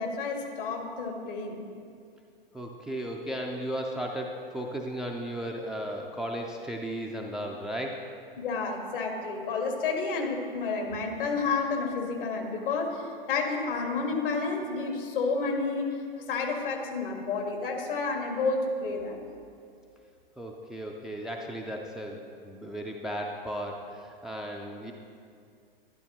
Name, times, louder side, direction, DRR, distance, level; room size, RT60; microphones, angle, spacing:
voice 1, 0.0-1.7 8.4-16.0 16.3-19.2, left 4 dB, 65° left, 2 dB, 1.7 m, -30 dB
voice 2, 2.5-8.0 20.4-24.9, equal, ahead, 1 dB, 0.3 m, -35 dB
12.0 x 11.0 x 2.9 m, 2.3 s
figure-of-eight pair, 105°, 30 cm